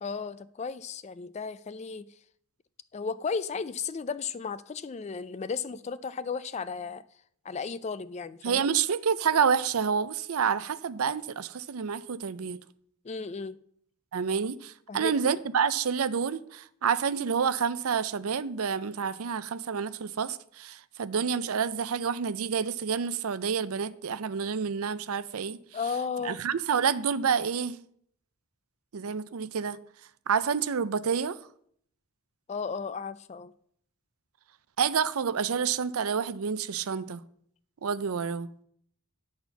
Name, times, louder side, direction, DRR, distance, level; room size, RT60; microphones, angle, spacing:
voice 1, 0.0-2.1 2.9-7.0 7.4-8.6 13.0-13.6 14.9-15.2 25.7-26.4 32.5-33.5, left 5 dB, 30° left, 0.3 m, -34 dB
voice 2, 8.4-12.6 14.1-25.6 26.2-27.8 28.9-29.8 30.3-31.4 34.8-37.2 37.8-38.5, right 6 dB, 75° right, 0.5 m, -28 dB
10.5 x 4.3 x 6.9 m
head